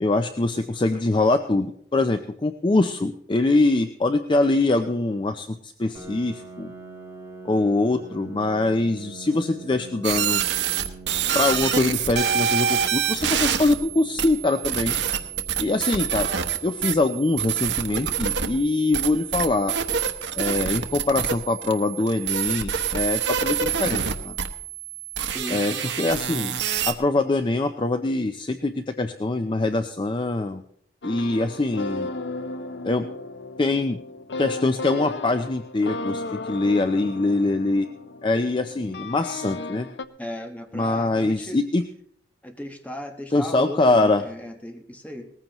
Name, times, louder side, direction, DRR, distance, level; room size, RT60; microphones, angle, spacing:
voice 1, 0.0-6.7 7.4-10.4 11.3-14.9 15.6-16.3 16.6-19.7 20.4-24.3 25.5-26.6 26.9-30.6 31.0-32.1 32.8-33.0 33.6-34.0 34.4-37.9 38.2-39.9 40.7-41.8 43.3-44.2, left 2 dB, 30° left, 8 dB, 0.5 m, -23 dB
Piano, 5.9-21.4, right 3 dB, 15° right, 2.4 m, -46 dB
sound 1, 10.0-26.9, right 7 dB, 80° right, 1.0 m, -26 dB
voice 2, 25.3-25.8 40.2-41.6 42.4-45.3, equal, 10° left, 4 dB, 1.3 m, -36 dB
sound 2, 31.0-40.0, left 2 dB, 70° left, 0.6 m, -35 dB
19.0 x 14.5 x 3.0 m, 0.66 s
head